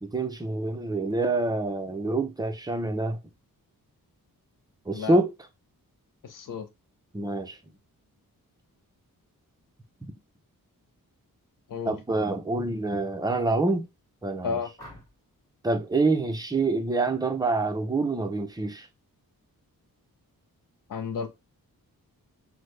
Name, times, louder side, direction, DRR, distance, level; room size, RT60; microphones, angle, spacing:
voice 1, 0.0-3.2 4.9-5.3 7.1-7.6 11.8-13.9 14.2-14.6 15.6-18.9, right 2 dB, 10° right, 0.5 m, -26 dB
voice 2, 6.2-6.7 11.7-11.9 14.4-14.7 20.9-21.3, left 6 dB, 60° left, 0.7 m, -32 dB
sound 1, 14.8-15.4 17.1-17.4 17.8-18.2, equal, 10° left, 1.5 m, -50 dB
6.0 x 2.1 x 3.2 m
wide cardioid pair, 175°, 36 cm